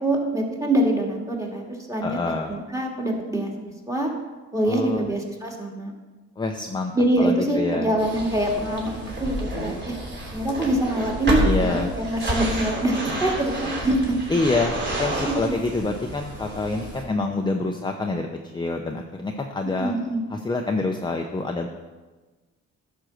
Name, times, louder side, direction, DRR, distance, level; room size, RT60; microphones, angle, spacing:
voice 1, 0.0-3.5 3.9-4.1 4.5-5.9 6.9-10.0 10.3-14.2 15.2-15.5 19.8-20.2, right 1 dB, 10° right, -1 dB, 2.2 m, -24 dB
voice 2, 2.0-2.5 4.7-5.1 6.4-6.9 7.2-7.9 11.4-11.9 14.3-18.3 18.5-19.9 20.3-21.7, left 3 dB, 15° left, 3 dB, 0.7 m, -26 dB
sound 1, 8.0-17.0, right 1 dB, 35° right, 3.1 m, -29 dB
11.5 x 4.6 x 6.5 m, 1.3 s
cardioid pair, 90°, 30 cm